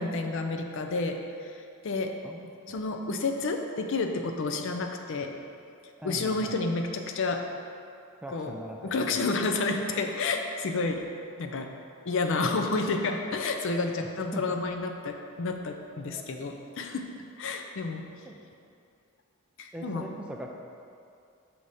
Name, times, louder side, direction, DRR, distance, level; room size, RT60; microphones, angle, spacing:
voice 1, 0.0-2.2 2.7-5.3 6.0-7.5 8.3-8.5 8.8-11.0 11.4-11.7 12.1-17.1 17.4-18.1 19.6-20.1, left 3 dB, 60° left, 5 dB, 0.5 m, -30 dB
voice 2, 2.2-2.8 6.0-6.5 8.2-9.2 14.3-14.4 16.1-16.3 18.2-18.4 19.7-20.5, right 1 dB, 5° right, 0 dB, 0.3 m, -41 dB
5.8 x 4.1 x 4.8 m, 2.4 s
head